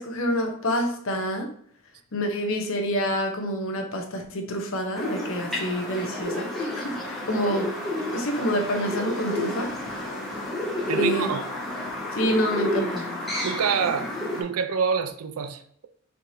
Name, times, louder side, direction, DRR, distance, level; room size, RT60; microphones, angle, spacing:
voice 1, 0.0-1.5 2.1-7.7 8.1-9.7 10.9-11.3 12.1-13.1, equal, 65° left, 0.8 m, -27 dB
sound 1, 5.0-14.4, left 1 dB, ahead, 0.9 m, -30 dB
voice 2, 10.9-11.4 13.4-14.1 14.4-15.9, right 6 dB, 80° right, 0.4 m, -26 dB
4.3 x 3.2 x 2.7 m
head